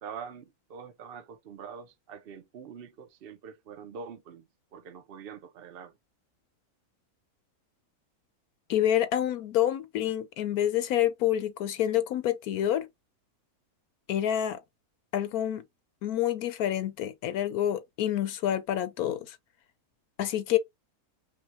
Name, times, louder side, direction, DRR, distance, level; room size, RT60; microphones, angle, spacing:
voice 1, 0.0-5.9, right 6 dB, 50° right, 0.8 m, -44 dB
voice 2, 8.7-12.9 14.1-14.6 15.1-15.6 16.0-19.4 20.2-20.6, left 11 dB, 80° left, 1.2 m, -27 dB
5.4 x 2.3 x 3.0 m
omnidirectional pair, 1.6 m